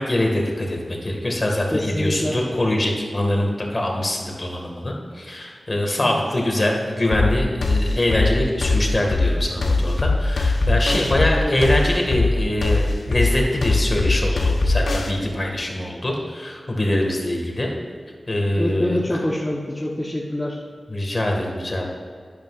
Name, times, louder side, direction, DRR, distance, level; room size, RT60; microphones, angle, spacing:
voice 1, 0.0-17.7 18.3-19.2 20.9-21.9, left 1 dB, 35° left, 0 dB, 1.9 m, -23 dB
voice 2, 1.7-2.4 6.0-6.2 10.9-11.7 18.6-20.6, left 1 dB, 15° left, -3 dB, 1.0 m, -26 dB
sound 1, 7.1-15.1, left 2 dB, 80° left, 0.8 m, -20 dB
11.0 x 10.5 x 2.5 m, 2.1 s
wide cardioid pair, 75°, 0 cm